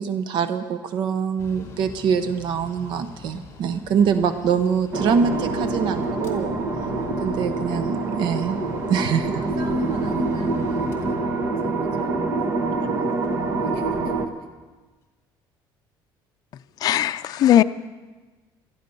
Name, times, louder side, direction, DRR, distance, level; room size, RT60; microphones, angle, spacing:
voice 1, 0.0-6.5 7.2-8.6 8.9-9.4 12.8-12.9, right 7 dB, 65° right, 10 dB, 0.8 m, -24 dB
Mechanical fan, 1.4-14.7, left 4 dB, 30° left, 2.6 m, -45 dB
voice 2, 4.0-4.4 4.7-4.8 6.8-7.1 9.1-12.4 13.5-14.5, right 3 dB, 90° right, 4 dB, 2.2 m, -42 dB
Mysterious Ambience Drone, 4.9-14.3, right 3 dB, 30° right, 1.2 m, -25 dB
voice 3, 16.8-17.6, left 11 dB, 50° left, 10 dB, 0.5 m, -18 dB
18.5 x 13.0 x 5.4 m, 1.3 s
cardioid pair, 150°, 9 cm